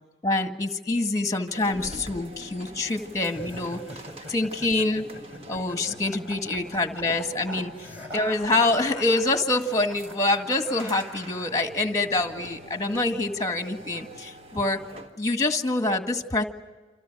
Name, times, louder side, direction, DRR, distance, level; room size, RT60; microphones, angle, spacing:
voice 1, 0.2-3.8 4.3-5.0 5.5-7.7 8.1-14.8 15.2-16.4, left 2 dB, 20° left, 6 dB, 1.8 m, -26 dB
sound 1, 1.5-15.2, right 1 dB, 35° right, 1.5 m, -45 dB
sound 2, 3.2-11.7, equal, 10° right, 4.3 m, -43 dB
28.5 x 27.0 x 6.2 m, 1.3 s
head